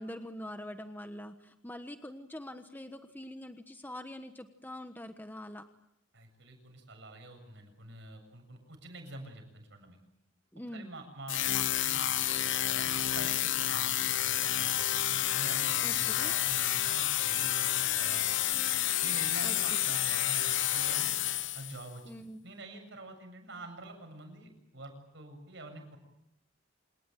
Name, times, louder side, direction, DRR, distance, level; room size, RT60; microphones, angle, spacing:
voice 1, 0.0-5.6 10.5-10.9 15.8-16.3 19.4-19.8 22.0-22.4, left 1 dB, 10° left, 7 dB, 1.3 m, -44 dB
voice 2, 6.1-10.0 10.7-12.4 12.6-15.0 15.3-18.4 19.0-21.1 21.5-22.0 22.4-26.0, right 2 dB, 65° right, 5 dB, 7.6 m, -47 dB
sound 1, 11.3-21.8, left 12 dB, 70° left, 1.0 m, -30 dB
27.5 x 19.0 x 9.1 m, 0.79 s
head